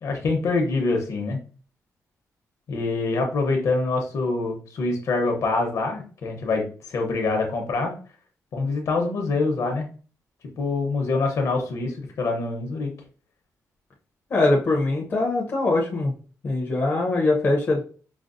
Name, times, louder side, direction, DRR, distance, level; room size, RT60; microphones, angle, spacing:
voice 1, 0.0-1.4 2.7-7.9 8.5-9.9 10.6-12.9, left 3 dB, 60° left, 3 dB, 0.9 m, -25 dB
voice 2, 14.3-16.1 16.4-17.8, left 2 dB, 35° left, -2 dB, 0.7 m, -22 dB
5.0 x 2.0 x 2.5 m, 0.39 s
wide cardioid pair, 175°, 6 cm